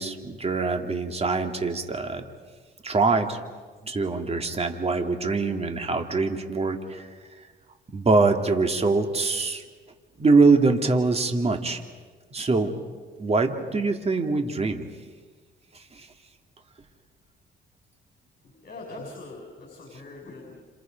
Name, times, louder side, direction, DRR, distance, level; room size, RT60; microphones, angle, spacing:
voice 1, 0.0-2.2 2.8-3.4 3.8-7.1 7.9-9.6 10.2-11.8 12.3-12.7 13.2-14.9 16.0-16.1, right 3 dB, 30° right, 5 dB, 2.5 m, -23 dB
voice 2, 18.4-20.6, left 2 dB, 50° left, 0 dB, 6.3 m, -42 dB
30.0 x 28.0 x 5.3 m, 1.4 s
cardioid pair, 90°, 20 cm